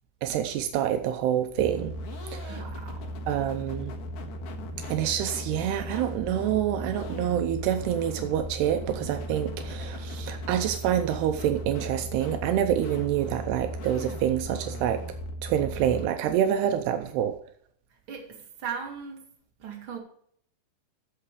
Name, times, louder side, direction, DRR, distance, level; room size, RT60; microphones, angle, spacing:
voice 1, 0.2-2.6 3.3-3.9 4.9-15.0 15.4-17.4, right 10 dB, 80° right, 7 dB, 2.8 m, -27 dB
sound 1, 1.6-16.1, equal, 70° left, 3.3 m, -37 dB
voice 2, 2.5-3.2 18.1-19.2 19.6-20.0, right 7 dB, 35° right, 0 dB, 2.9 m, -38 dB
14.5 x 6.8 x 5.0 m, 0.63 s
omnidirectional pair, 4.7 m